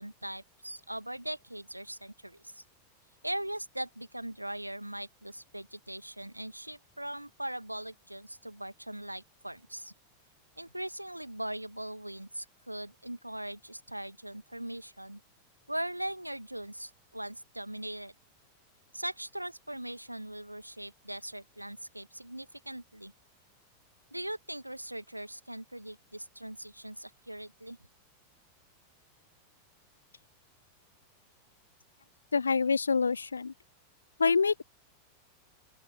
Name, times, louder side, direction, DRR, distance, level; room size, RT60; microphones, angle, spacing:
voice 1, 0.0-2.6 3.2-9.9 10.6-15.2 15.7-18.1 18.9-23.1 24.1-27.8, right 1 dB, 85° right, 2.0 m, -40 dB
voice 2, 32.3-33.5 34.2-34.6, left 5 dB, 75° left, 0.5 m, -26 dB
open air
figure-of-eight pair, 90°, 0 cm